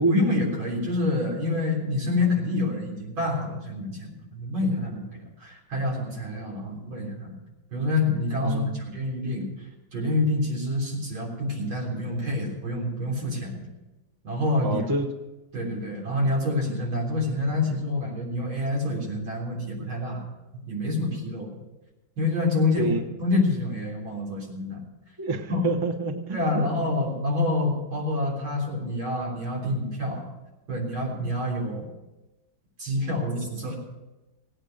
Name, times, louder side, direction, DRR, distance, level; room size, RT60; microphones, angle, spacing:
voice 1, 0.1-7.3 7.7-9.5 9.9-13.7 14.2-14.8 15.5-20.2 20.7-21.5 22.2-22.9 23.2-24.8 25.5-25.6 26.3-30.3 30.7-31.9 32.8-33.8, left 2 dB, 85° right, -2 dB, 4.5 m, -27 dB
voice 2, 8.4-8.8 14.6-15.1 22.8-23.0 25.2-26.7, right 3 dB, 20° right, 5 dB, 0.7 m, -27 dB
17.0 x 9.0 x 6.5 m, 1.0 s
omnidirectional pair, 2.1 m